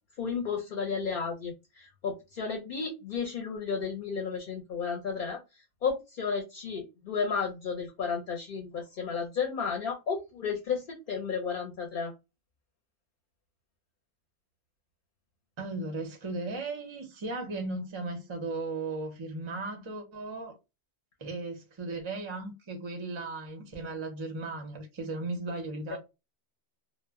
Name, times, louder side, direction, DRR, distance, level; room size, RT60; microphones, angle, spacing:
voice 1, 0.2-5.4 5.8-12.1 25.9-26.0, left 5 dB, 55° left, 0.7 m, -33 dB
voice 2, 15.6-20.6 21.2-26.0, right 3 dB, 40° right, 0.4 m, -36 dB
2.0 x 2.0 x 3.4 m
omnidirectional pair, 1.2 m